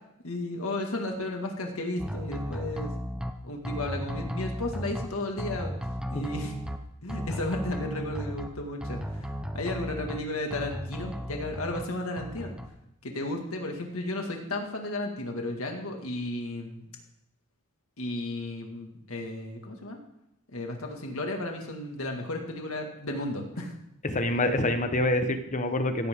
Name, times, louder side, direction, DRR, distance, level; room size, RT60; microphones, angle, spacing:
voice 1, 0.2-2.9 3.4-5.7 6.1-6.5 7.0-12.6 13.0-16.8 18.0-20.0 20.5-23.7, left 2 dB, 70° left, 2 dB, 2.1 m, -34 dB
sound 1, 2.0-3.3 3.6-5.1 5.4-6.8 7.1-8.5 8.8-10.2 10.5-11.8 12.2-12.7, equal, 5° right, 0.9 m, -35 dB
voice 2, 24.0-26.1, left 1 dB, 35° left, 8 dB, 1.2 m, -26 dB
16.0 x 13.5 x 3.7 m, 0.82 s
head